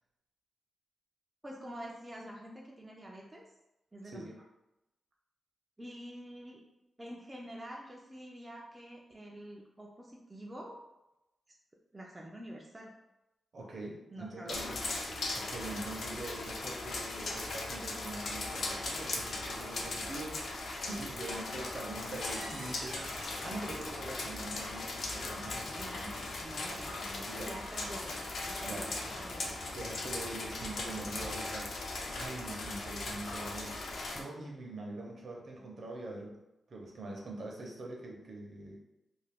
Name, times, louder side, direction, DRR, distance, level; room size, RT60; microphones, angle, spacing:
voice 1, 1.4-3.5 3.9-4.3 5.8-6.6 7.0-10.8 11.9-13.0 14.1-14.8 21.3-21.4 25.3-26.9 27.5-28.2 28.5-29.5, right 1 dB, 10° right, -3 dB, 0.3 m, -47 dB
voice 2, 13.5-14.8 15.3-25.7 26.6-27.5 28.6-28.9 29.7-36.4 36.7-38.8, right 2 dB, 50° right, -1 dB, 0.6 m, -44 dB
sound 1, 14.5-34.2, left 2 dB, 60° left, 0.5 m, -39 dB
sound 2, 21.0-24.8 25.9-26.0 26.4-27.3 27.7-29.4 30.3-31.1, right 2 dB, 90° right, 0.6 m, -51 dB
sound 3, 22.8-31.6, left 2 dB, 75° left, 0.8 m, -55 dB
2.5 x 2.4 x 3.4 m, 0.92 s
wide cardioid pair, 170°, 0 cm